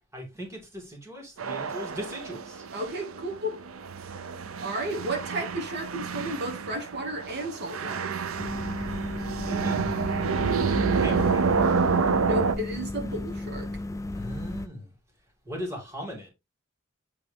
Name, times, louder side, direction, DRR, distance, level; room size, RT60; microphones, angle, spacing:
voice 1, 0.1-2.7 9.4-10.4 11.0-11.6 14.1-14.9 15.4-16.3, equal, 15° right, 2.6 m, -38 dB
sound 1, 1.4-12.5, right 5 dB, 85° right, 0.7 m, -28 dB
voice 2, 2.7-3.7 4.6-8.2 12.2-13.7, right 1 dB, 55° right, 1.6 m, -33 dB
sound 2, 8.4-14.7, left 2 dB, 15° left, 0.3 m, -34 dB
8.5 x 3.6 x 3.4 m
head